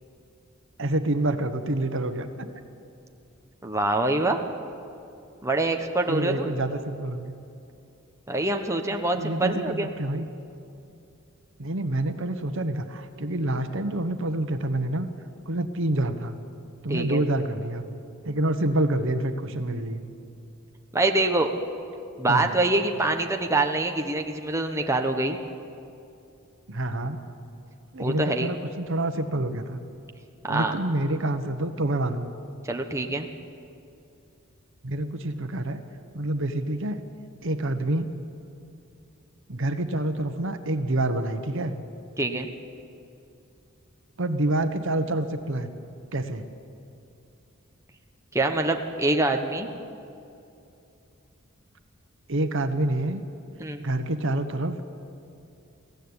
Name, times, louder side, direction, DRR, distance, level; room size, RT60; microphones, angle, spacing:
voice 1, 0.8-2.5 6.1-7.3 9.1-10.3 11.6-15.1 15.4-16.3 16.8-17.8 18.2-20.0 22.3-22.5 26.7-27.2 27.9-29.8 30.5-32.3 34.8-35.8 36.1-37.0 37.4-38.1 39.5-41.7 44.2-45.7 46.1-46.4 52.3-53.2 53.8-54.8, right 1 dB, 65° right, 8 dB, 1.3 m, -27 dB
voice 2, 3.6-4.4 5.4-6.5 8.3-9.9 16.9-17.2 20.9-21.5 22.2-25.4 28.0-28.5 30.4-30.7 32.7-33.3 42.2-42.5 48.3-49.7 53.6-53.8, right 2 dB, 15° right, 3 dB, 1.2 m, -25 dB
22.5 x 16.0 x 9.8 m, 2.7 s
head